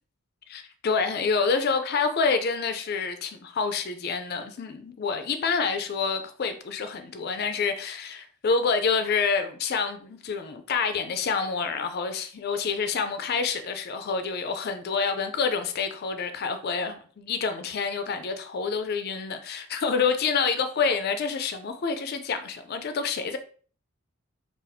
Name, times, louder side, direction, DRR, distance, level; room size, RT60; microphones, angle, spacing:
voice 1, 0.5-23.4, left 5 dB, 45° left, 0.3 m, -27 dB
2.6 x 2.3 x 4.1 m
head